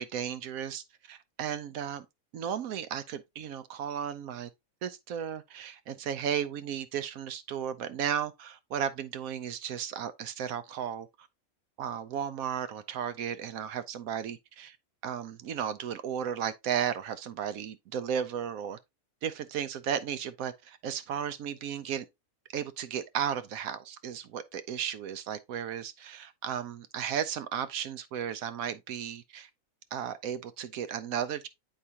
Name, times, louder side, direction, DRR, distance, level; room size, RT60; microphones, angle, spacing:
voice 1, 0.0-2.1 2.3-4.5 4.8-11.3 11.8-14.8 15.0-18.8 19.2-22.1 22.5-29.5 29.9-31.5, right 8 dB, 85° right, 1.1 m, -34 dB
7.8 x 4.8 x 2.8 m
omnidirectional pair, 1.4 m